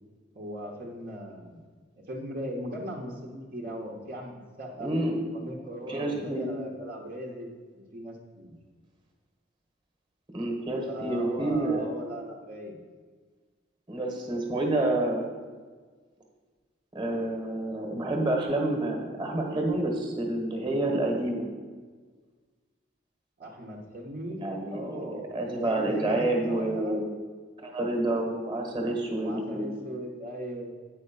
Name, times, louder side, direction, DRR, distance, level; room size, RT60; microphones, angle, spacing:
voice 1, 0.3-1.6 2.1-4.9 5.3-7.5 7.7-8.6 10.9-12.8 23.4-25.3 25.6-27.1 29.2-30.7, equal, 50° right, -2 dB, 1.1 m, -38 dB
voice 2, 4.8-5.2 5.9-6.5 10.3-11.9 13.9-15.3 16.9-21.5 24.4-27.1 27.6-29.7, right 1 dB, 25° right, 2 dB, 1.4 m, -28 dB
8.5 x 5.5 x 5.4 m, 1.5 s
head